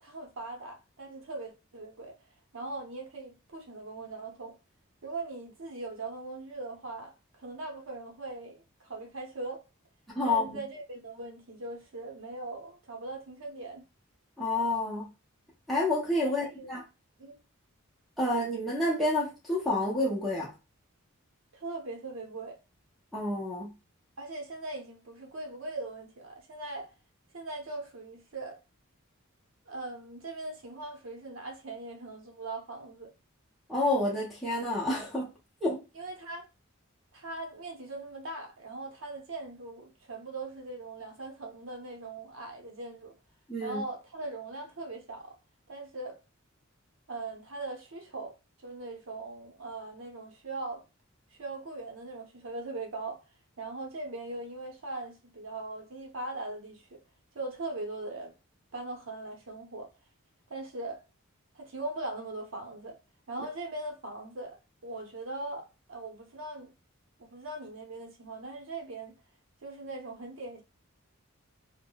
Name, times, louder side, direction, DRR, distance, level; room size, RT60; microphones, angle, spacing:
voice 1, 0.0-2.1 2.5-4.5 5.0-9.6 10.2-13.8 16.2-16.8 17.2-17.4 21.5-22.6 24.2-26.9 27.3-28.6 29.7-33.1 35.9-36.5 37.1-43.1 43.6-45.3 45.7-46.2 47.1-48.3 48.6-50.8 51.4-53.2 53.6-57.0 57.3-58.3 58.7-59.9 60.5-61.0 61.5-62.9 63.3-64.6 64.8-66.7 67.2-69.1 69.6-70.6, right 2 dB, 65° right, 0.8 m, -40 dB
voice 2, 10.2-10.6 14.4-15.1 15.7-16.8 18.2-20.5 23.1-23.7 33.7-35.3 35.6-35.8 43.5-43.8, left 2 dB, ahead, 0.7 m, -29 dB
3.5 x 2.1 x 2.3 m
head